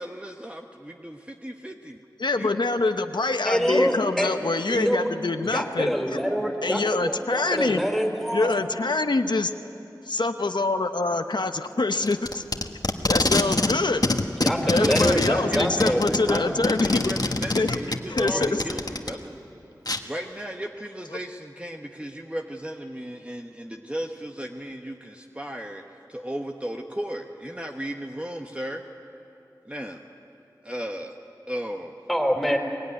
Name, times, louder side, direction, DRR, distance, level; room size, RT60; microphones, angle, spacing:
voice 1, 0.0-2.0 2.3-2.5 14.7-19.4 20.0-28.8 29.7-30.0 30.6-31.2 31.5-32.0, equal, 15° right, 2 dB, 1.2 m, -35 dB
voice 2, 2.2-6.2 6.6-7.8 8.3-9.5 10.0-12.4 13.1-14.0 14.7-17.0 17.5-17.7 18.1-18.5 21.1-21.2, left 3 dB, 85° left, 7 dB, 0.9 m, -25 dB
voice 3, 3.4-4.4 4.7-5.1 5.5-8.5 14.4-16.4 18.3-18.6 32.1-32.6, equal, ahead, 2 dB, 4.1 m, -25 dB
Packing tape duct tape, 12.0-13.8 14.0-19.1 19.9-20.0, left 2 dB, 55° left, 1.4 m, -24 dB
23.5 x 21.0 x 9.9 m, 2.8 s
wide cardioid pair, 45°, 8 cm